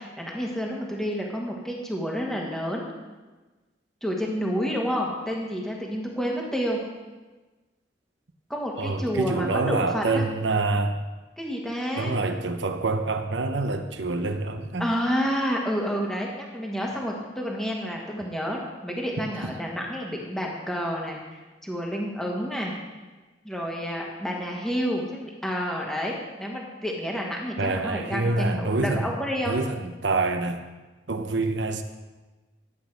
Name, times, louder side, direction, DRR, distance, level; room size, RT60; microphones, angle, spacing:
voice 1, 0.0-2.9 4.0-6.8 8.5-10.2 11.4-12.2 14.8-22.7 23.4-29.6, equal, ahead, -2 dB, 1.4 m, -29 dB
voice 2, 8.8-11.0 12.0-14.9 19.4-19.5 27.6-29.2 29.5-30.6 31.1-31.8, right 3 dB, 75° right, 7 dB, 0.9 m, -26 dB
11.0 x 8.3 x 4.7 m, 1.2 s
head